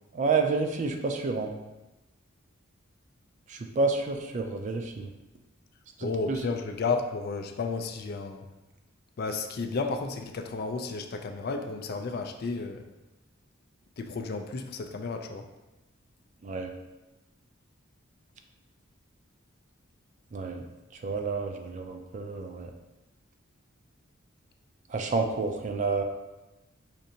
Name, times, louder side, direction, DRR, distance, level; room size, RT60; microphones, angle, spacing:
voice 1, 0.1-1.5 3.5-5.1 6.0-6.4 16.4-16.7 20.3-20.6 21.0-22.7 24.9-26.0, right 4 dB, 35° right, 4 dB, 0.3 m, -29 dB
voice 2, 6.0-8.4 9.2-12.8 14.0-15.4, left 4 dB, 50° left, 5 dB, 0.3 m, -32 dB
5.0 x 2.6 x 2.7 m, 1.0 s
head